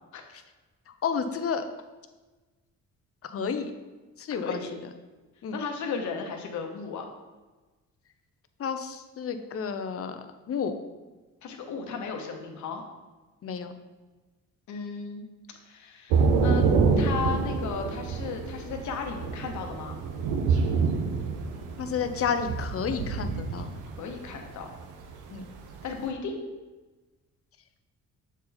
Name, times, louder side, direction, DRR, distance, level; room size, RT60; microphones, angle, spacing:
voice 1, 1.0-1.6 3.2-3.7 4.2-4.6 5.4-5.6 8.6-10.7 13.4-13.7 21.8-23.7 25.3-25.5, left 6 dB, 50° left, 8 dB, 0.7 m, -31 dB
voice 2, 4.4-4.7 5.5-7.1 11.4-12.8 14.7-15.3 15.6-16.6 17.0-20.0 24.0-24.7 25.8-26.4, left 5 dB, 70° left, 3 dB, 1.2 m, -35 dB
Thunder / Rain, 16.1-26.1, right 4 dB, 90° right, 0.8 m, -27 dB
7.2 x 4.3 x 4.0 m, 1.2 s
cardioid pair, 90°, 30 cm